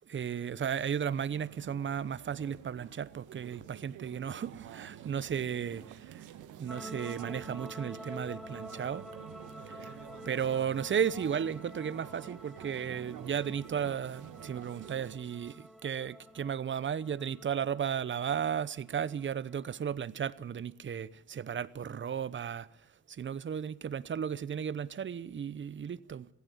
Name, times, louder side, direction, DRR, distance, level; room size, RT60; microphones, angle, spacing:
voice 1, 0.1-6.3 6.6-9.1 9.7-10.0 10.2-22.7 23.1-26.3, right 8 dB, 40° right, 0.8 m, -34 dB
sound 1, 1.1-15.2, right 11 dB, 90° right, 1.3 m, -49 dB
sound 2, 6.7-19.9, equal, ahead, 1.0 m, -49 dB
16.5 x 15.5 x 9.8 m
cardioid pair, 90°, 30 cm